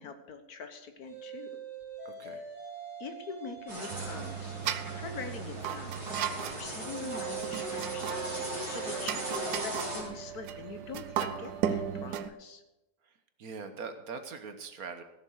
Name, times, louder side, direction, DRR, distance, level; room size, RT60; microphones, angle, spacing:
voice 1, 0.0-1.5 2.2-2.4 3.0-4.6 5.0-12.6, left 4 dB, 65° left, 8 dB, 1.7 m, -44 dB
sound 1, 1.0-5.4 6.8-12.2, right 7 dB, 90° left, 4.1 m, -43 dB
voice 2, 2.0-2.4 13.0-15.0, right 5 dB, 65° right, 8 dB, 1.5 m, -42 dB
sound 2, 3.7-10.0, right 1 dB, 20° right, 3.2 m, -39 dB
sound 3, 3.9-12.3, right 9 dB, 80° right, 1.3 m, -37 dB
16.0 x 7.1 x 6.4 m, 0.98 s
omnidirectional pair, 1.7 m